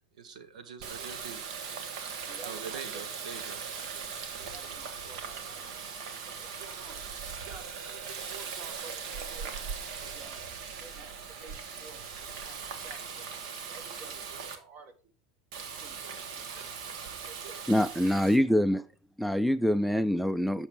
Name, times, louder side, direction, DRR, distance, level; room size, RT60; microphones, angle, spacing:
voice 1, 0.1-1.4 2.4-3.6, right 6 dB, 85° right, 1.0 m, -43 dB
Water tap faucet, 0.8-14.6 15.5-18.4, right 6 dB, 65° right, 1.3 m, -40 dB
voice 2, 2.3-2.8 4.4-7.0 7.4-9.5 10.0-10.5 10.8-13.3 13.7-14.9 15.8-16.6 17.2-17.6 18.0-18.5 19.8-19.9, right 5 dB, 40° right, 1.5 m, -52 dB
voice 3, 17.7-18.8 19.2-20.7, equal, ahead, 0.3 m, -25 dB
8.2 x 6.0 x 3.5 m
hypercardioid pair, 105°, 4 cm